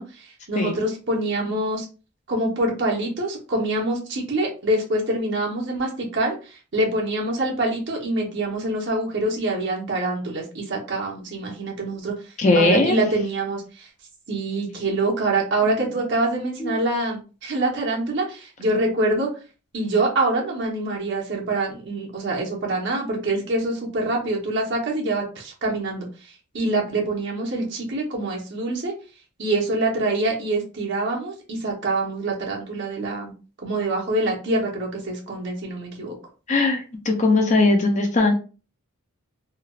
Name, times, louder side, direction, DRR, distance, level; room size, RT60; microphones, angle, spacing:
voice 1, 0.0-1.9 2.3-13.9 14.3-19.3 19.7-28.9 29.4-33.3 33.6-36.2, right 2 dB, 55° right, -1 dB, 0.9 m, -25 dB
voice 2, 12.4-13.0 15.7-15.8 16.6-16.8 36.5-38.3, left 2 dB, 30° left, 3 dB, 0.4 m, -19 dB
3.2 x 2.3 x 2.3 m, 0.35 s
head